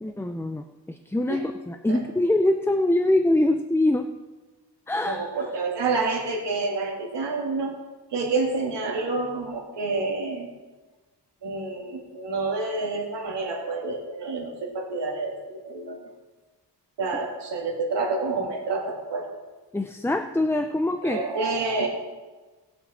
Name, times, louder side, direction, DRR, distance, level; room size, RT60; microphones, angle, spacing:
voice 1, 0.0-4.1 4.9-5.2 19.7-21.2, left 1 dB, 5° left, 6 dB, 0.4 m, -24 dB
voice 2, 5.0-7.8 8.1-10.5 11.4-16.0 17.0-19.3 21.0-21.9, right 3 dB, 80° right, 0 dB, 2.4 m, -28 dB
19.0 x 7.1 x 4.2 m, 1.3 s
wide cardioid pair, 125°, 41 cm